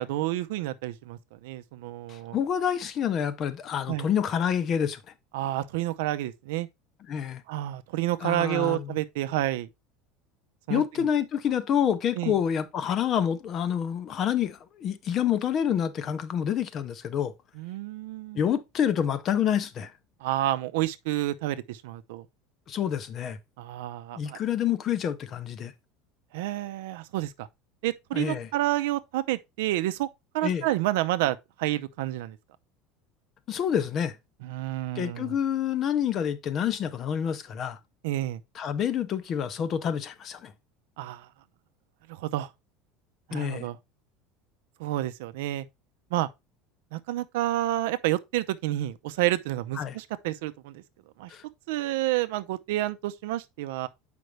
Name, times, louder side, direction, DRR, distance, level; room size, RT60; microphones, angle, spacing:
voice 1, 0.0-2.4 3.9-4.1 5.3-6.7 7.5-9.7 10.7-10.8 12.2-12.3 17.6-18.4 20.2-22.3 23.6-24.4 26.3-27.5 27.8-30.1 30.3-32.4 34.4-35.4 38.0-38.4 41.0-41.3 42.1-42.5 43.3-43.8 44.8-45.7 46.1-46.3 46.9-50.8 51.2-51.3 51.7-53.9, right 15 dB, 85° right, 0.6 m, -29 dB
voice 2, 2.1-5.0 7.1-7.4 8.2-9.0 10.7-17.3 18.3-19.9 22.7-23.4 24.1-25.7 28.1-28.5 30.4-30.7 33.5-34.2 35.0-37.8 38.5-40.5 43.3-43.7 49.8-50.0 51.3-51.4, left 9 dB, 30° left, 0.6 m, -28 dB
7.9 x 5.2 x 3.2 m
cardioid pair, 180°, 0 cm